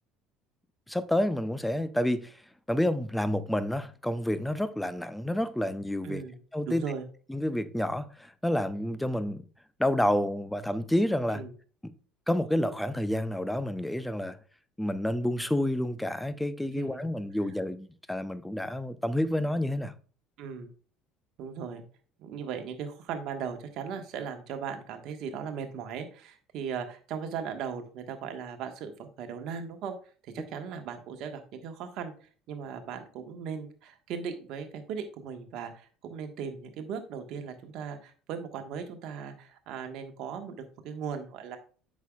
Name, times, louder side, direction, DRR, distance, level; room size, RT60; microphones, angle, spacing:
voice 1, 0.9-2.4 2.7-6.2 6.5-6.8 7.3-9.4 9.8-11.4 11.8-11.9 12.3-14.4 14.8-19.9 30.4-30.5, left 1 dB, 5° left, 0.7 m, -29 dB
voice 2, 6.0-6.4 6.7-7.0 11.3-11.5 16.7-17.0 20.4-20.7 21.4-21.8 22.2-29.9 30.2-40.6 40.8-41.6, right 6 dB, 60° right, 1.4 m, -38 dB
8.1 x 6.3 x 2.4 m
hypercardioid pair, 75°, 0 cm